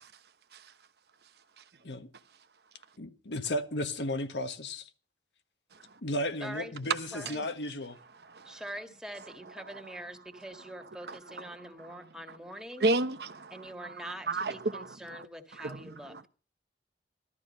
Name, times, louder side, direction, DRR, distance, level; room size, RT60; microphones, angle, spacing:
voice 1, 3.0-4.9 6.0-8.0, left 1 dB, 85° left, 1.4 m, -34 dB
voice 2, 6.4-6.8 7.1-7.4 8.4-12.9 13.5-16.2, right 1 dB, 5° right, 1.8 m, -44 dB
voice 3, 8.2-8.6 9.7-9.8 11.1-11.4 11.8-12.0 12.3-12.4 12.8-15.3 15.5-16.3, right 2 dB, 65° right, 0.9 m, -34 dB
15.0 x 13.0 x 5.3 m
head